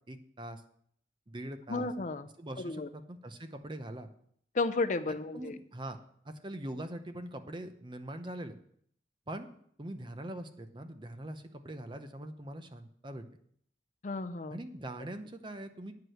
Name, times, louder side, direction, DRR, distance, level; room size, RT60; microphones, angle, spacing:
voice 1, 0.1-0.6 1.3-1.9 2.4-4.1 5.1-6.0 6.2-8.6 9.3-9.5 9.8-13.2 14.5-15.9, right 1 dB, 25° right, 8 dB, 0.7 m, -42 dB
voice 2, 1.7-2.3 2.6-2.9 4.5-5.5 14.0-14.6, left 3 dB, 45° left, 10 dB, 0.5 m, -33 dB
9.7 x 4.8 x 7.8 m, 0.65 s
head